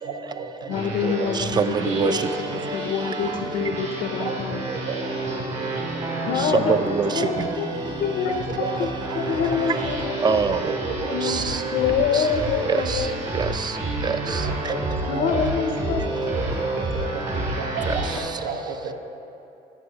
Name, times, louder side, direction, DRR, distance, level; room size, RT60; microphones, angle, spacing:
voice 1, 0.0-1.3 2.5-2.6 4.2-5.0 5.9-7.3 8.5-8.7 9.1-9.2 9.5-9.6 10.5-10.6 10.8-11.1 12.4-12.5 14.4-15.2 16.3-18.1 18.4-18.9, right 5 dB, 75° right, 2 dB, 1.1 m, -34 dB
voice 2, 0.7-4.6 6.3-7.7 8.0-8.9 9.2-10.6 10.9-13.1 15.1-16.0, left 7 dB, 65° left, 6 dB, 0.5 m, -26 dB
sound 1, 0.7-18.2, right 2 dB, 40° right, 2.2 m, -29 dB
voice 3, 1.3-2.3 6.3-7.6 10.2-10.8 11.0-11.7 12.0-13.8 14.0-14.7 17.9-18.3, right 5 dB, 25° right, 11 dB, 0.4 m, -26 dB
13.0 x 8.3 x 2.8 m, 2.7 s
cardioid pair, 110°, 17 cm